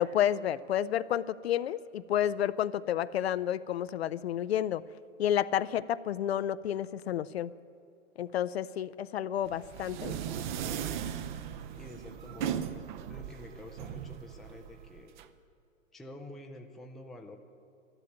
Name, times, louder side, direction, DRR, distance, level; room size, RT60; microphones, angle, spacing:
voice 1, 0.0-4.8 5.2-7.5 8.2-10.3, left 10 dB, 55° left, 15 dB, 0.5 m, -30 dB
sound 1, 9.4-15.2, right 9 dB, 40° right, 0.7 m, -38 dB
voice 2, 11.8-15.2 15.9-17.4, left 1 dB, ahead, 2 dB, 0.4 m, -48 dB
12.5 x 12.0 x 9.2 m, 2.7 s
figure-of-eight pair, 110°, 39 cm